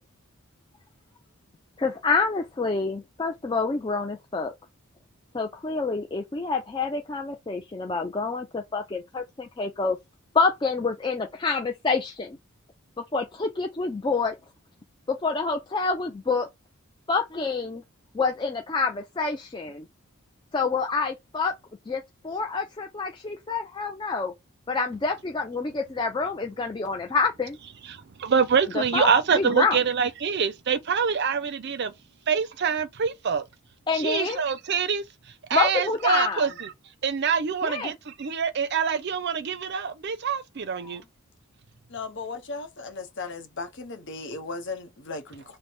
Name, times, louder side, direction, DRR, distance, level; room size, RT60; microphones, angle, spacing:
voice 1, 1.8-4.5 5.3-10.0 10.3-12.4 13.1-14.4 15.1-16.5 17.1-17.8 18.1-19.9 20.5-21.5 21.9-24.3 24.7-27.6 28.7-29.8 33.9-34.4 35.5-36.5 37.6-37.9 40.8-40.9, left 4 dB, 20° left, 0.4 m, -27 dB
voice 2, 27.9-31.9 32.3-33.5 33.9-35.0 35.5-36.7 37.0-41.0, right 6 dB, 50° right, 0.5 m, -25 dB
voice 3, 41.9-45.6, left 3 dB, 55° left, 0.9 m, -36 dB
3.3 x 2.1 x 4.2 m
head